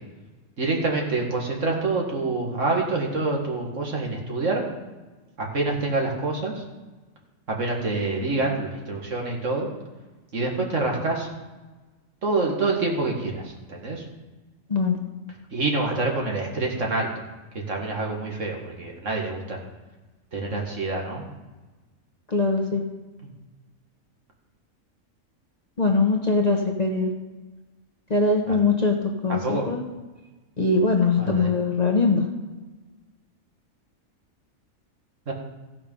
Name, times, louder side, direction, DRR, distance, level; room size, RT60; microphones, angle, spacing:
voice 1, 0.6-4.6 5.4-6.6 7.5-9.7 10.3-11.3 12.2-14.0 15.5-17.1 17.7-19.6 20.3-21.2 23.2-23.3 28.5-28.6 29.3-29.7 31.2-31.5 35.3-35.4, right 3 dB, 65° right, 0 dB, 2.2 m, -26 dB
voice 2, 22.3-22.8 25.8-27.1 28.1-29.0 29.2-29.8 30.6-32.2, left 3 dB, 35° left, 2 dB, 1.1 m, -21 dB
15.0 x 6.0 x 5.4 m, 1.2 s
omnidirectional pair, 1.4 m